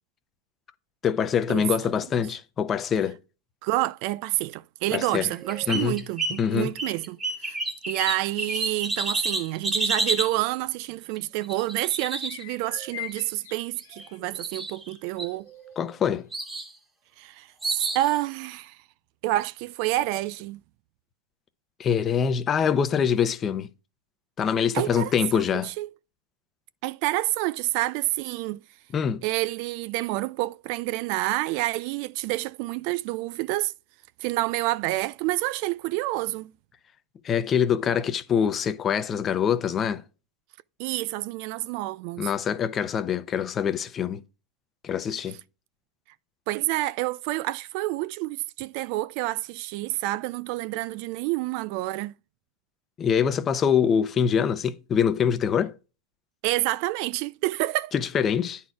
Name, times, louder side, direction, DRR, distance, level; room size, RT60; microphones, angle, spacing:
voice 1, 1.0-3.2 4.9-5.3 5.7-5.9 6.4-6.7 15.8-16.3 21.8-23.7 24.4-25.7 28.9-29.2 37.2-40.0 42.2-44.2 44.8-45.4 53.0-55.7 57.9-58.6, left 7 dB, 25° left, 0.7 m, -24 dB
voice 2, 3.6-7.6 7.9-15.5 17.2-18.8 19.2-20.6 24.7-25.1 25.5-25.9 26.8-28.6 29.2-33.7 34.2-36.5 40.8-42.3 46.5-52.1 56.4-57.9, right 17 dB, 50° right, 0.3 m, -28 dB
sound 1, 5.3-6.4 6.8-10.3 11.4-12.9 13.8-14.1 14.3-14.9 15.2-15.9 16.3-16.7 17.6-18.1, right 2 dB, 15° right, 1.5 m, -30 dB
sound 2, 12.2-14.2 14.7-15.2 15.5-15.6 16.3-16.4, left 15 dB, 70° left, 1.0 m, -41 dB
9.4 x 4.3 x 4.7 m
supercardioid pair, 135°, 0 cm